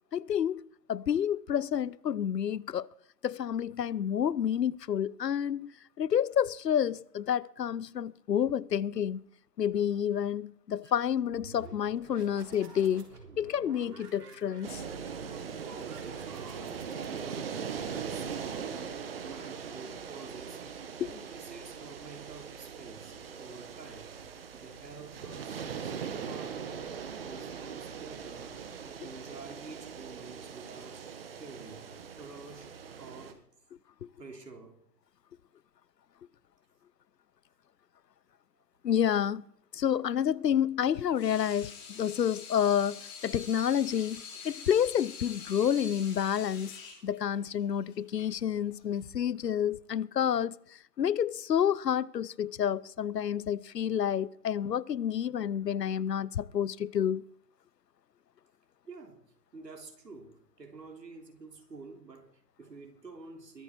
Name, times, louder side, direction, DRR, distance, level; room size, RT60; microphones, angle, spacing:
voice 1, 0.1-0.6 0.9-2.9 3.2-9.2 9.6-13.1 13.4-14.8 21.0-21.1 34.0-34.1 38.8-39.4 39.7-46.7 47.0-57.2, left 9 dB, 85° left, 0.7 m, -29 dB
sound 1, 11.0-18.7, right 4 dB, 70° right, 3.8 m, -51 dB
sound 2, 14.6-33.3, right 6 dB, 35° right, 1.5 m, -41 dB
voice 2, 15.6-17.7 18.1-18.8 19.2-20.7 21.0-28.5 28.8-31.1 31.4-31.9 32.2-32.7 33.0-33.4 34.2-34.8 58.9-59.2 59.5-63.6, right 4 dB, 90° right, 3.5 m, -49 dB
Water tap faucet / Sink (filling or washing), 41.0-49.0, left 5 dB, 50° left, 5.8 m, -46 dB
22.0 x 9.1 x 4.5 m
hypercardioid pair, 155°, 48 cm